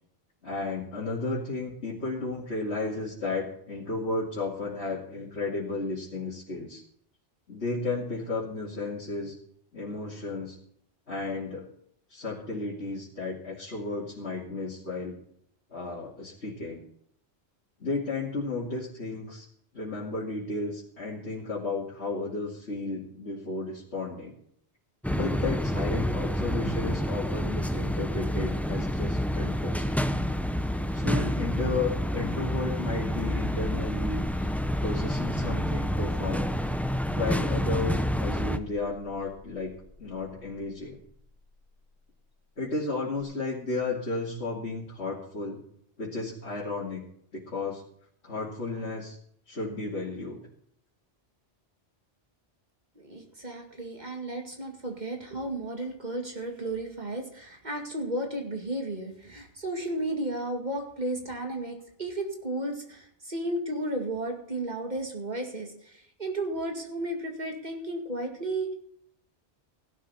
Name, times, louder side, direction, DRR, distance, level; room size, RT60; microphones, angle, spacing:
voice 1, 0.4-6.8 7.5-9.3 9.7-10.6 11.1-11.7 12.1-15.2 15.7-16.8 17.8-19.5 19.7-24.4 25.1-29.9 30.9-34.5 34.8-36.5 37.1-39.7 40.0-41.0 42.6-45.6 46.0-47.0 47.3-47.8 48.2-49.2 49.5-50.4, left 3 dB, 80° left, -6 dB, 2.7 m, -33 dB
sound 1, 25.0-38.6, equal, ahead, 0.5 m, -28 dB
sound 2, 33.3-41.7 43.2-43.3, left 2 dB, 25° left, 2.7 m, -41 dB
voice 2, 53.0-68.7, right 1 dB, 40° right, 3 dB, 2.2 m, -33 dB
16.5 x 11.5 x 4.2 m, 0.67 s
omnidirectional pair, 1.1 m